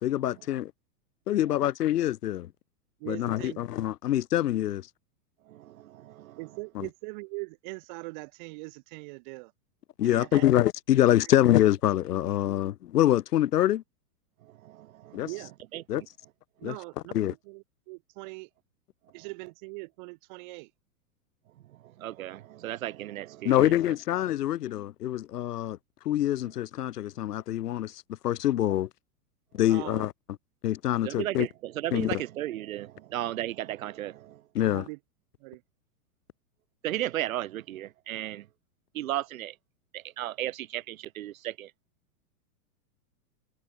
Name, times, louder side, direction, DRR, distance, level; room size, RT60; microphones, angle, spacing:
voice 1, 0.0-0.7 1.3-2.5 3.0-4.9 6.7-6.9 10.0-13.8 15.1-15.3 15.9-16.0 16.6-16.8 17.1-17.3 23.4-25.8 26.0-28.9 29.5-30.1 30.6-31.5 31.9-32.2 34.5-34.9, left 13 dB, 70° left, 1.6 m, -25 dB
voice 2, 3.0-3.6 6.4-9.5 10.0-10.5 15.2-15.5 16.6-18.5 19.1-20.7 29.7-30.0 34.7-35.0 35.4-35.6, right 27 dB, 30° right, 1.5 m, -41 dB
voice 3, 5.4-6.6 14.4-15.3 15.7-16.1 16.6-16.7 19.2-19.3 21.6-23.7 31.0-34.4 36.8-38.5 38.9-39.6 39.9-41.7, right 13 dB, 55° right, 1.6 m, -35 dB
supercardioid pair, 175°, 48 cm